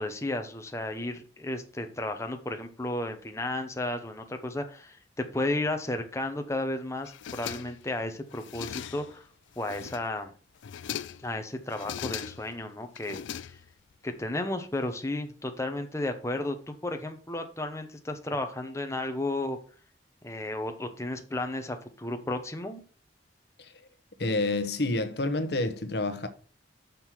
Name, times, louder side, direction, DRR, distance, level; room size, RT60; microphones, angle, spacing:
voice 1, 0.0-9.2 9.6-10.3 11.2-13.2 13.5-13.6 14.0-19.6 20.2-22.8, left 2 dB, 15° left, 0.9 m, -33 dB
sound 1, 7.0-7.9 8.3-9.2 9.6-10.2 10.6-11.3 11.7-12.6 13.0-13.9, left 9 dB, 90° left, 0.4 m, -39 dB
voice 2, 24.2-26.3, left 2 dB, 60° left, 1.0 m, -29 dB
6.3 x 5.4 x 5.9 m
head